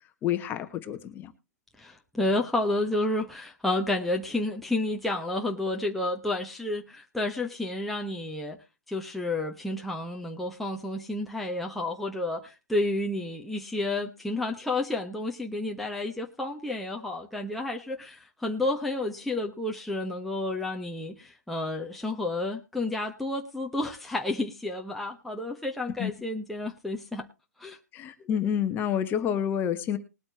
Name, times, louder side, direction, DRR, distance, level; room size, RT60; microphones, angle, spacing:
voice 1, 0.2-1.3 26.0-26.1 27.9-30.0, left 9 dB, 20° left, 8 dB, 1.3 m, -28 dB
voice 2, 1.8-8.6 8.9-27.2 27.6-27.8, left 2 dB, ahead, 0 dB, 1.2 m, -31 dB
20.5 x 8.6 x 2.9 m, 0.27 s
hypercardioid pair, 130°, 9 cm